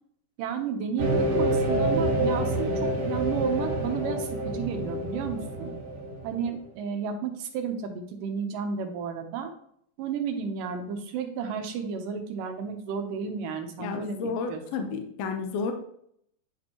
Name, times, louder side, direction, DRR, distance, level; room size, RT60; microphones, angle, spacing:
voice 1, 0.4-5.8 6.2-9.5 10.0-14.9, right 6 dB, 90° right, 6 dB, 2.5 m, -32 dB
sound 1, 1.0-6.5, right 1 dB, 50° right, 2.5 m, -27 dB
voice 2, 13.8-15.7, left 4 dB, 75° left, 5 dB, 1.6 m, -31 dB
10.5 x 4.4 x 2.9 m, 0.68 s
omnidirectional pair, 3.8 m